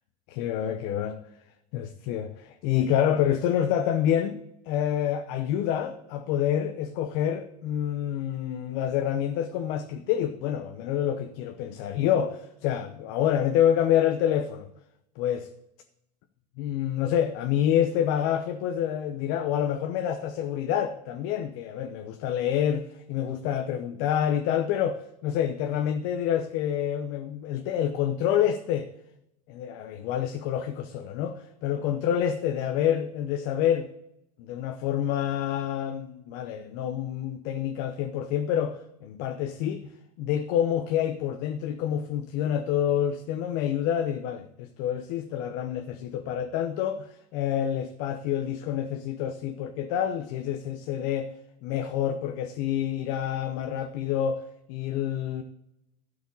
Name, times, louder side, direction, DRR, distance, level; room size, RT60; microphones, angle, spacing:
voice 1, 0.3-1.2 1.7-4.4 4.7-14.7 15.2-15.5 16.6-28.9 29.5-33.9 34.4-39.9 40.2-51.3 51.6-54.4 54.7-55.4, left 10 dB, 60° left, 0.8 m, -27 dB
12.0 x 5.0 x 8.3 m
supercardioid pair, 120°, 20 cm